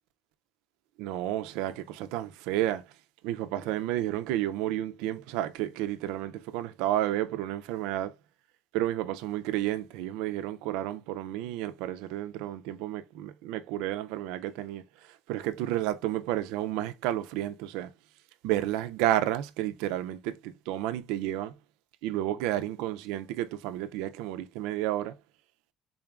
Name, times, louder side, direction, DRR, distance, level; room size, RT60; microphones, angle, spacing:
voice 1, 1.0-2.8 3.2-8.1 8.7-14.8 15.3-17.9 18.4-21.5 22.0-25.1, right 13 dB, 85° right, 0.4 m, -31 dB
3.8 x 2.4 x 3.4 m
cardioid pair, 170°, 0 cm